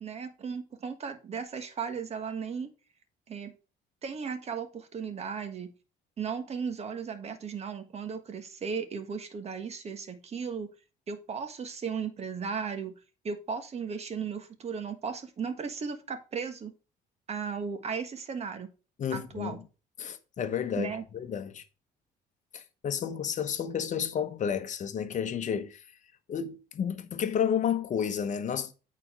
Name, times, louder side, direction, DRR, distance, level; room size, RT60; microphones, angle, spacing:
voice 1, 0.0-2.7 3.3-3.5 4.0-5.7 6.2-10.7 11.1-16.7 17.3-18.7 19.1-19.6 20.8-21.0, right 6 dB, 40° right, 1.4 m, -36 dB
voice 2, 19.0-19.6 20.0-21.6 22.5-25.8 26.3-28.7, left 8 dB, 45° left, 1.0 m, -31 dB
8.7 x 4.2 x 4.7 m
cardioid pair, 110°, 17 cm